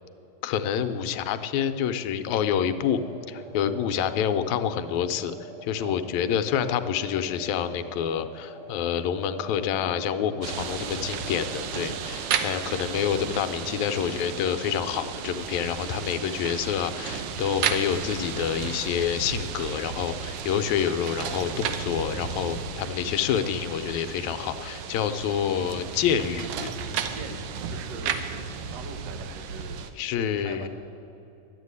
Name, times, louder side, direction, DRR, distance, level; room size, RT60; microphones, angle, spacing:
voice 1, 0.4-3.0 3.3-5.3 5.6-26.7 30.0-30.7, left 8 dB, 80° left, 10 dB, 1.9 m, -27 dB
sound 1, 2.9-12.2, right 1 dB, 40° right, 4.3 m, -46 dB
sound 2, 10.4-29.9, right 7 dB, 75° right, 1.3 m, -33 dB
voice 2, 27.1-28.4 28.7-29.8 30.1-30.7, right 4 dB, 60° right, 6 dB, 1.1 m, -42 dB
11.5 x 8.3 x 9.5 m, 2.8 s
omnidirectional pair, 3.3 m